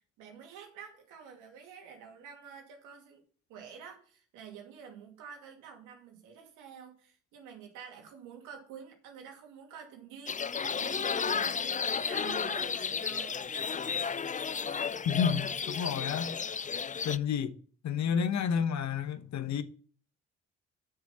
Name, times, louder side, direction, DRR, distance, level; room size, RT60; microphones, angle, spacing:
voice 1, 0.0-3.2 3.5-11.6 11.9-13.4, right 7 dB, 85° right, 2.5 m, -48 dB
sound 1, 10.3-17.2, left 6 dB, 25° left, 0.5 m, -33 dB
voice 2, 15.0-16.4 17.0-17.5 17.8-19.6, left 7 dB, 65° left, 1.1 m, -30 dB
7.9 x 7.0 x 5.5 m
supercardioid pair, 60°, 31 cm